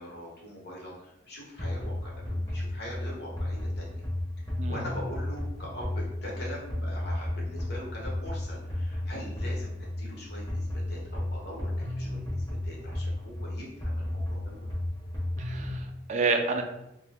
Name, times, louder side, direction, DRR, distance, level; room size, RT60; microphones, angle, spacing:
voice 1, 0.0-4.0 4.6-14.7, equal, 55° left, -4 dB, 1.0 m, -42 dB
sound 1, 1.6-15.8, left 1 dB, 20° left, 0.8 m, -33 dB
voice 2, 15.4-16.6, right 4 dB, 40° right, 4 dB, 0.3 m, -29 dB
2.7 x 2.2 x 3.3 m, 0.89 s
head